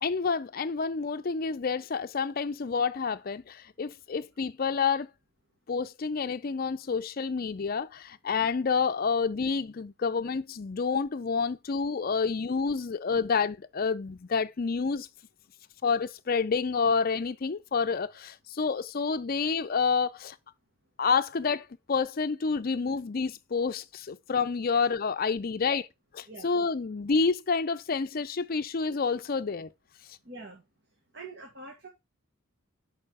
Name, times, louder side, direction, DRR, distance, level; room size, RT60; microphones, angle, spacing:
voice 1, 0.0-5.1 5.7-15.1 15.8-20.4 21.0-25.8 26.4-29.7, left 5 dB, 45° left, 0.5 m, -28 dB
voice 2, 30.2-30.6 31.1-31.9, right 3 dB, 55° right, 1.6 m, -44 dB
6.7 x 4.9 x 4.8 m
head